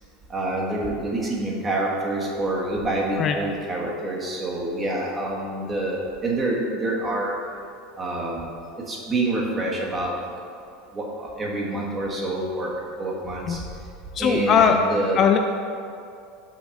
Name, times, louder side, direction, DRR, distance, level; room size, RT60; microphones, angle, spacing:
voice 1, 0.3-7.4 8.0-10.1 10.9-13.6 14.2-15.2, right 2 dB, 20° right, -3 dB, 1.4 m, -27 dB
voice 2, 14.1-14.8 15.1-15.4, left 7 dB, 35° left, 5 dB, 0.4 m, -19 dB
6.0 x 4.1 x 6.3 m, 2.4 s
supercardioid pair, 140°, 0 cm